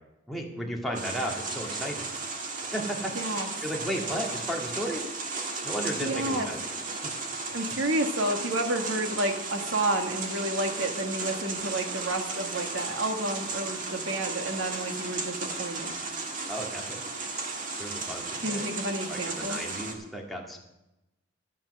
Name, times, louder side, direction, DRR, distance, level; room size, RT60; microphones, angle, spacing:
voice 1, 0.3-2.1 2.6-3.2 3.6-5.0 5.6-6.6 16.5-17.1 17.8-18.7 19.1-20.6, equal, ahead, -2 dB, 2.0 m, -34 dB
sound 1, 0.9-19.9, right 3 dB, 40° right, 1.6 m, -35 dB
voice 2, 3.1-3.5 6.0-6.5 7.5-15.9 18.4-19.6, right 1 dB, 65° right, 4 dB, 1.7 m, -30 dB
12.0 x 9.0 x 6.5 m, 0.92 s
head